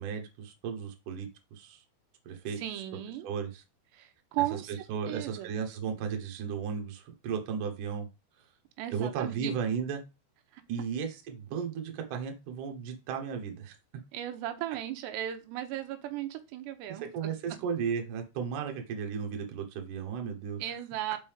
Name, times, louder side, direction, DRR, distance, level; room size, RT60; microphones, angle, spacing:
voice 1, 0.0-1.8 2.3-2.8 3.2-3.6 4.7-8.1 8.4-8.5 8.9-10.0 10.7-13.7 16.9-20.6, right 6 dB, 65° right, 4 dB, 2.2 m, -35 dB
voice 2, 2.6-3.3 3.9-4.7 5.1-5.5 8.8-9.5 10.5-10.6 14.1-17.3 20.6-21.2, right 13 dB, 85° right, 6 dB, 2.9 m, -36 dB
5.5 x 5.4 x 3.5 m, 0.27 s
omnidirectional pair, 5.0 m